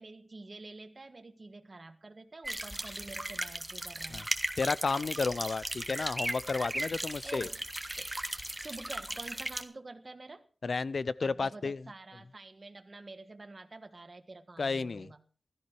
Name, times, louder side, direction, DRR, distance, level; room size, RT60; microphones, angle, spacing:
voice 1, 0.0-4.3 7.2-7.6 7.9-8.1 8.6-10.4 11.2-15.2, right 3 dB, 40° right, 1.6 m, -47 dB
sound 1, 2.4-9.6, right 1 dB, 15° right, 1.5 m, -37 dB
voice 2, 4.6-7.5 10.6-11.8 14.6-15.1, left 4 dB, 60° left, 0.6 m, -32 dB
16.0 x 13.5 x 4.7 m
wide cardioid pair, 95°, 0 cm